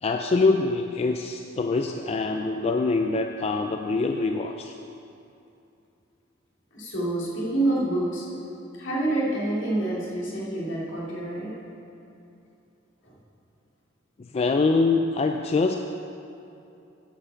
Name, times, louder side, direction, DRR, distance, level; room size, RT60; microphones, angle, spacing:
voice 1, 0.0-4.8 14.2-15.8, left 3 dB, 30° left, 4 dB, 0.3 m, -24 dB
voice 2, 6.7-8.3 8.7-11.5 13.0-13.1, right 1 dB, 70° left, -6 dB, 2.7 m, -27 dB
9.6 x 5.8 x 6.9 m, 2.7 s
head